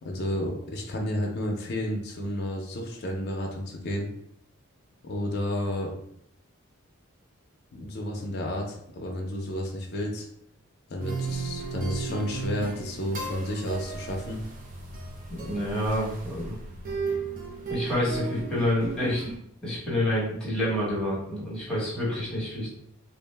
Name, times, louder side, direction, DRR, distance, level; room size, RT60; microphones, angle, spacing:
voice 1, 0.0-4.1 5.0-5.9 7.7-10.3 10.9-14.4, left 1 dB, 50° left, 0 dB, 0.5 m, -31 dB
sound 1, 11.0-19.4, right 4 dB, 40° right, 0.5 m, -35 dB
voice 2, 15.3-16.6 17.7-19.2 19.6-22.7, left 1 dB, 5° left, -7 dB, 1.0 m, -28 dB
2.4 x 2.0 x 3.3 m, 0.71 s
head